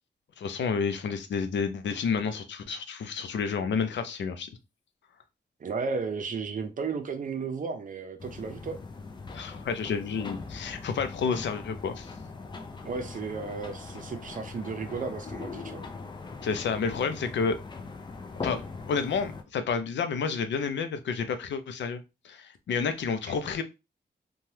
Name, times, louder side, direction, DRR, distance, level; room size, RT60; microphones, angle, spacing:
voice 1, 0.4-4.5 9.3-12.1 16.4-17.6 18.4-18.6 18.9-23.6, left 5 dB, 85° left, 0.5 m, -30 dB
voice 2, 5.6-8.8 12.8-15.8 23.2-23.3, right 5 dB, 50° right, 0.5 m, -34 dB
Residential staircase window rattle, 8.2-19.4, left 4 dB, 25° left, 0.4 m, -41 dB
3.1 x 2.2 x 2.7 m
wide cardioid pair, 170°, 18 cm